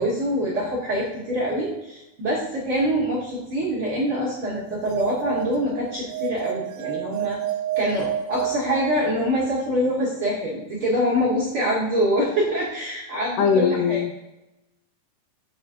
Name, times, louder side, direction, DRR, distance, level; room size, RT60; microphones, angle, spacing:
voice 1, 0.0-7.4 7.7-14.0, equal, 60° right, -7 dB, 1.4 m, -25 dB
sound 1, 4.6-9.5, right 11 dB, 85° right, 2.5 m, -30 dB
voice 2, 13.4-14.3, left 6 dB, 80° left, 6 dB, 2.6 m, -21 dB
7.1 x 7.0 x 2.5 m, 0.95 s
omnidirectional pair, 4.6 m